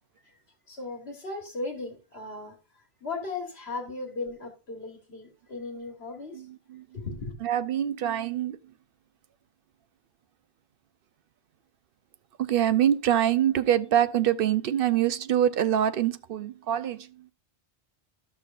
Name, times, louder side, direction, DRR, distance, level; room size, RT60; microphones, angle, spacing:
voice 1, 0.7-6.4 6.9-7.4, left 3 dB, 75° left, 1.7 m, -37 dB
voice 2, 7.4-8.6 12.4-17.1, right 10 dB, 65° right, 0.7 m, -24 dB
13.0 x 6.2 x 2.5 m
omnidirectional pair, 1.1 m